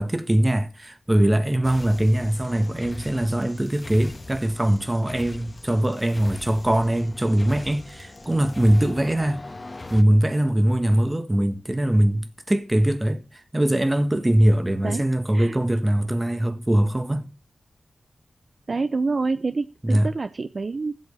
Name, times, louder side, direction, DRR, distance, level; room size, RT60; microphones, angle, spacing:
voice 1, 0.0-9.4 9.9-17.3 19.8-20.1, right 1 dB, 20° right, 1.7 m, -22 dB
sound 1, 1.6-10.0, left 2 dB, 35° left, 1.4 m, -41 dB
voice 2, 18.7-20.9, right 3 dB, 55° right, 0.6 m, -27 dB
14.0 x 8.0 x 5.5 m
cardioid pair, 55°, 0 cm